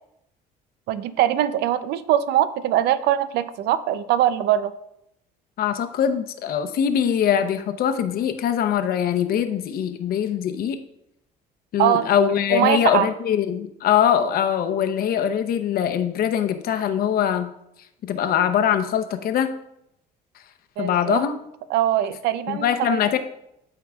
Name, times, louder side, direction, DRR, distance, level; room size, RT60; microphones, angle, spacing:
voice 1, 0.9-4.7 11.8-12.1 12.5-13.1 20.8-21.2 21.7-23.0, right 12 dB, 80° right, 14 dB, 0.5 m, -22 dB
voice 2, 5.6-10.8 11.7-17.5 18.1-19.5 20.8-21.4 22.5-23.2, left 9 dB, 60° left, 9 dB, 0.7 m, -22 dB
12.5 x 4.6 x 2.3 m, 0.80 s
cardioid pair, 110°, 17 cm